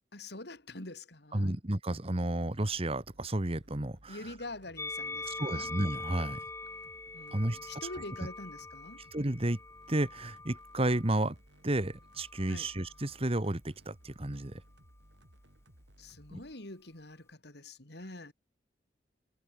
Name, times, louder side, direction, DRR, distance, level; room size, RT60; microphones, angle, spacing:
voice 1, 0.1-1.5 4.1-5.7 7.1-9.0 12.5-12.7 16.0-18.3, left 2 dB, 65° left, 3.8 m, -45 dB
voice 2, 1.3-4.3 5.2-6.4 7.3-7.6 9.1-9.6 9.9-11.3 11.6-14.6 16.3-16.4, right 1 dB, 35° right, 1.7 m, -32 dB
sound 1, 2.4-16.5, equal, 75° right, 5.0 m, -60 dB
Musical instrument, 4.8-11.2 12.0-13.0, left 3 dB, 15° left, 1.4 m, -43 dB
head